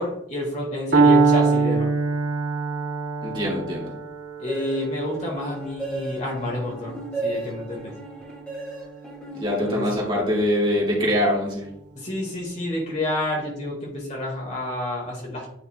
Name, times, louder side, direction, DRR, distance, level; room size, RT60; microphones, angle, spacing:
voice 1, 0.0-2.0 4.4-8.0 9.7-9.9 11.9-15.5, left 1 dB, 40° left, -1 dB, 1.9 m, -29 dB
Piano, 0.9-8.9, right 4 dB, 80° right, 1.8 m, -24 dB
voice 2, 3.2-3.9 9.3-11.7, equal, 25° right, -4 dB, 2.4 m, -23 dB
sound 1, 4.5-10.3, right 2 dB, 5° left, 2.5 m, -35 dB
9.4 x 5.3 x 2.3 m, 0.72 s
head